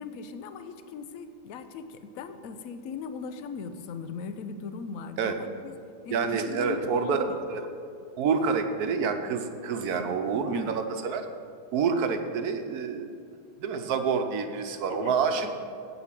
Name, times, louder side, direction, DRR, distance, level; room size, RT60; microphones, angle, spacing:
voice 1, 0.0-5.7 6.0-7.4 10.5-10.7 14.9-15.5, left 5 dB, 65° left, 10 dB, 1.0 m, -39 dB
voice 2, 6.1-7.2 7.5-7.6 8.2-11.3 11.7-13.1 13.6-15.5, right 5 dB, 70° right, 7 dB, 1.2 m, -27 dB
8.3 x 8.1 x 7.4 m, 2.3 s
omnidirectional pair, 1.8 m